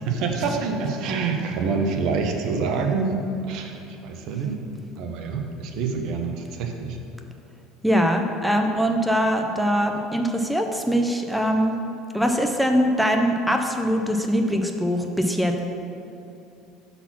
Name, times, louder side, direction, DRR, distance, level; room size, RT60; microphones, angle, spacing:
voice 1, 0.0-3.2 3.5-3.8 4.0-4.6 5.0-7.0, right 5 dB, 55° right, 3 dB, 0.8 m, -26 dB
voice 2, 7.8-11.8 12.1-15.6, equal, ahead, 3 dB, 0.4 m, -22 dB
5.8 x 4.1 x 5.8 m, 2.8 s
cardioid pair, 140°, 0 cm